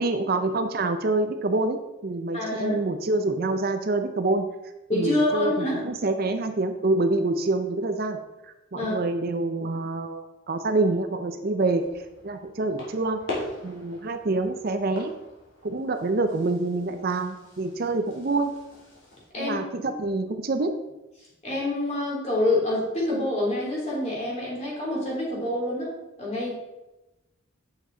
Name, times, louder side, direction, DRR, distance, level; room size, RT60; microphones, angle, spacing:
voice 1, 0.0-4.5 4.9-8.2 8.7-11.8 12.2-15.1 15.6-18.5 19.4-20.7, right 2 dB, 45° right, 7 dB, 0.5 m, -26 dB
voice 2, 2.3-2.7 4.9-5.8 8.7-8.9 19.3-19.6 21.4-25.9 26.2-26.5, left 1 dB, 30° left, -4 dB, 3.0 m, -26 dB
sound 1, 11.8-19.3, left 2 dB, 65° left, 2.9 m, -41 dB
8.9 x 6.9 x 3.9 m, 1.0 s
head